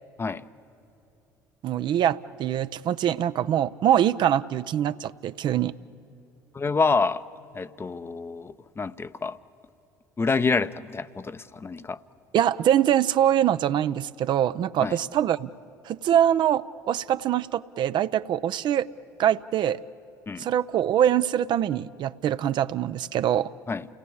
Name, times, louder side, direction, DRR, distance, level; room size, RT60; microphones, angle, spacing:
voice 1, 1.6-5.7 12.3-15.5 15.8-18.9 19.2-19.8 20.4-23.5, right 10 dB, 55° right, 13 dB, 0.6 m, -23 dB
voice 2, 6.5-7.2 7.5-9.4 10.2-12.0 14.8-15.0 20.3-20.5 23.7-23.9, left 4 dB, 25° left, 13 dB, 0.7 m, -27 dB
29.0 x 18.0 x 8.7 m, 2.9 s
hypercardioid pair, 60°, 9 cm